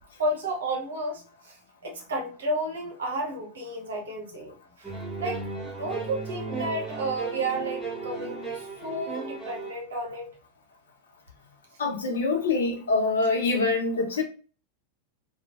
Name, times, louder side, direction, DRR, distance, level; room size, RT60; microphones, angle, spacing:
voice 1, 0.2-1.6 1.8-10.3, right 1 dB, 65° right, 0 dB, 0.9 m, -32 dB
sound 1, 4.8-9.8, right 4 dB, 10° right, 1.2 m, -35 dB
voice 2, 11.8-14.2, left 3 dB, 65° left, 1 dB, 0.9 m, -25 dB
3.1 x 2.4 x 2.4 m, 0.37 s
figure-of-eight pair, 90°, 0 cm